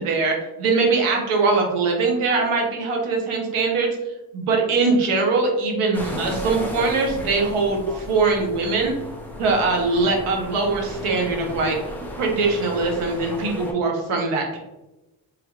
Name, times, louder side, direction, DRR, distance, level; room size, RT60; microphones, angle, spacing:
voice 1, 0.0-3.9 4.3-8.9 9.4-11.8 12.2-14.6, right 3 dB, 80° right, 1 dB, 0.9 m, -22 dB
sound 1, 5.9-13.7, left 1 dB, 5° left, 0.7 m, -34 dB
3.3 x 2.4 x 2.9 m, 0.99 s
cardioid pair, 65°, 50 cm